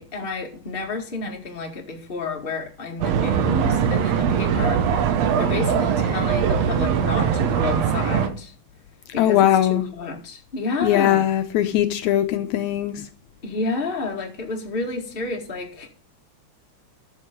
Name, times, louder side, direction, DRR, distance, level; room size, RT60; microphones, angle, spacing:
voice 1, 0.0-8.5 9.1-11.3 13.4-15.9, left 3 dB, 20° left, 1.9 m, -30 dB
sound 1, 3.0-8.3, right 7 dB, 65° right, 2.1 m, -21 dB
voice 2, 9.2-9.8 10.8-13.1, left 12 dB, 75° left, 2.0 m, -20 dB
12.0 x 7.5 x 5.3 m
omnidirectional pair, 3.4 m